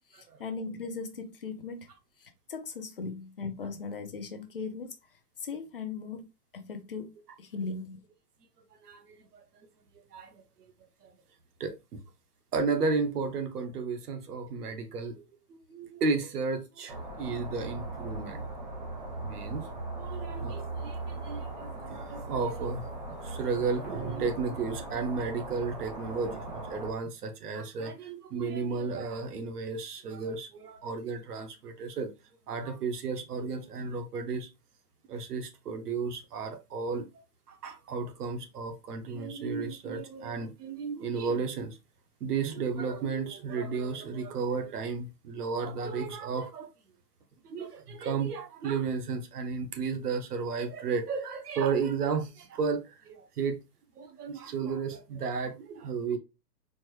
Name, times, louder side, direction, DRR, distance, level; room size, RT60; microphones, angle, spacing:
voice 1, 0.1-1.9 2.2-4.9 5.4-6.3 6.5-7.1 7.4-8.0, left 4 dB, 35° left, 0.5 m, -38 dB
voice 2, 11.6-12.0 12.5-15.2 15.7-18.5 19.2-19.7 20.0-22.9 23.2-32.1 32.5-34.5 35.1-37.1 37.5-41.8 42.2-46.7 47.4-53.6 54.0-56.2, right 5 dB, 65° right, 1.1 m, -33 dB
sound 1, 16.9-26.9, right 2 dB, 25° right, 0.6 m, -39 dB
sound 2, 23.8-25.3, right 4 dB, 90° right, 1.8 m, -41 dB
4.4 x 2.6 x 3.1 m
hypercardioid pair, 165°, 49 cm